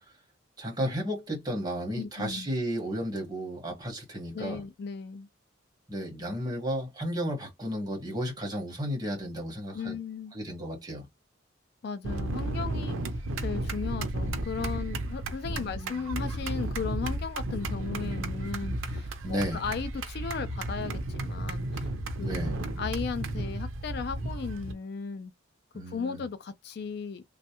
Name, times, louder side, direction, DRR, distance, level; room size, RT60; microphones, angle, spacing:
voice 1, 0.6-4.6 5.9-9.9 10.3-11.1 15.4-16.0 19.2-19.6 22.2-22.6 25.7-26.2, equal, 20° right, 1.4 m, -33 dB
voice 2, 2.0-2.5 4.3-5.3 9.7-10.4 11.8-21.9 22.2-25.3 25.9-27.2, left 5 dB, 55° left, 0.3 m, -36 dB
sound 1, 12.0-24.7, right 1 dB, 85° right, 0.6 m, -33 dB
3.1 x 2.2 x 2.9 m
head